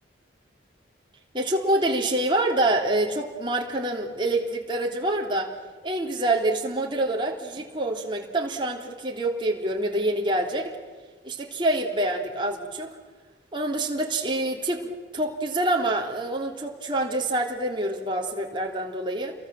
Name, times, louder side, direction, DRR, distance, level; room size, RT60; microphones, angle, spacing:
voice 1, 1.3-5.5 5.8-10.7 11.2-12.9 13.5-19.3, right 1 dB, 25° right, 0 dB, 3.3 m, -26 dB
29.5 x 22.5 x 7.6 m, 1.4 s
head